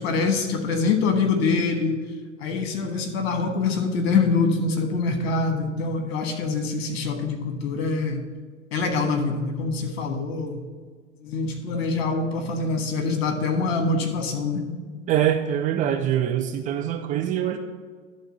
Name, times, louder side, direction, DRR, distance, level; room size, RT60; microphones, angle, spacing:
voice 1, 0.0-2.0 2.4-8.2 8.7-10.6 11.2-14.7, left 4 dB, 55° left, 5 dB, 1.5 m, -24 dB
voice 2, 15.1-17.6, right 10 dB, 20° right, 5 dB, 0.4 m, -24 dB
11.5 x 3.8 x 7.7 m, 1.5 s
figure-of-eight pair, 85°, 38 cm